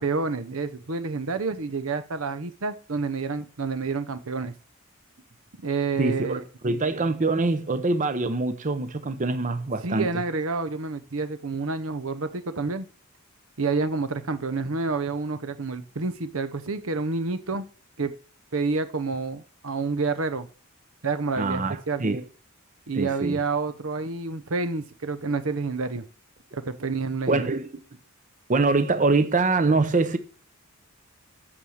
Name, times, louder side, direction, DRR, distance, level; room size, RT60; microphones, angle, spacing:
voice 1, 0.0-4.5 5.6-6.4 9.8-12.9 13.6-17.6 18.0-18.1 18.5-20.5 21.0-22.0 22.9-26.0 26.5-27.5, right 4 dB, 70° right, 0.9 m, -28 dB
voice 2, 6.0-6.4 6.6-10.1 21.4-22.2 23.0-23.4 27.3-27.7 28.5-30.2, right 3 dB, 35° right, 0.8 m, -24 dB
8.8 x 6.5 x 7.2 m
head